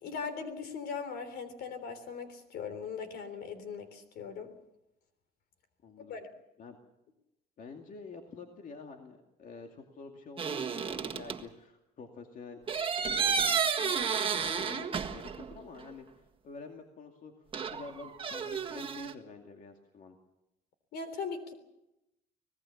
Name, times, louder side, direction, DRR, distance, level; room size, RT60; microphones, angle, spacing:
voice 1, 0.0-4.5 6.1-6.3 20.9-21.5, left 5 dB, 70° left, 10 dB, 3.5 m, -39 dB
voice 2, 5.8-6.2 6.6-6.8 7.6-12.6 13.1-14.0 14.3-20.2, left 4 dB, 50° left, 3 dB, 2.4 m, -48 dB
sound 1, 10.4-11.4 12.7-15.5 15.8-15.9 17.5-19.1, right 6 dB, 30° right, 1.7 m, -32 dB
25.5 x 18.5 x 7.3 m, 0.90 s
cardioid pair, 110°, 17 cm